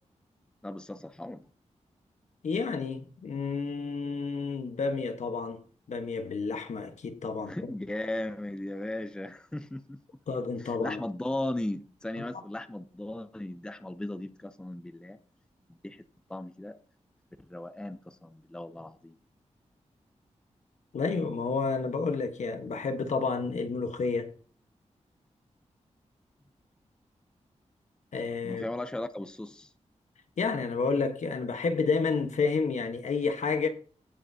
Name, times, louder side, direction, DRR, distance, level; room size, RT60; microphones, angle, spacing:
voice 1, 0.6-1.4 7.5-10.0 10.6-15.2 15.8-16.0 16.3-16.8 17.5-19.2 28.4-29.7, left 1 dB, 5° left, 0.5 m, -37 dB
voice 2, 2.4-5.6 5.9-7.7 10.3-11.0 20.9-24.3 28.1-28.6 30.4-33.7, left 4 dB, 75° left, 1.2 m, -30 dB
16.5 x 5.8 x 2.7 m
wide cardioid pair, 140°, 12 cm